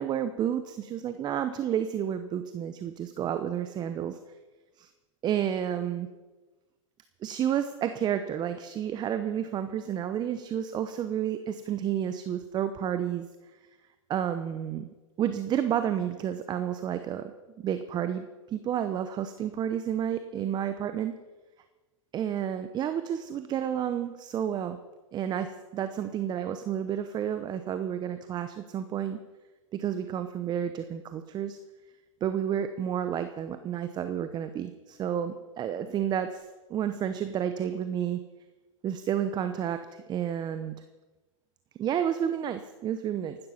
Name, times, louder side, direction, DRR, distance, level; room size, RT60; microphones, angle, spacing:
voice 1, 0.0-4.2 4.8-4.9 5.2-6.1 7.2-13.3 14.1-14.9 15.2-17.3 17.6-21.1 22.1-24.8 25.1-29.2 29.7-31.6 32.2-36.4 36.7-38.2 38.8-40.7 41.8-43.4, right 9 dB, 25° right, 10 dB, 0.8 m, -30 dB
15.5 x 12.0 x 5.8 m, 1.2 s
hypercardioid pair, 120°, 17 cm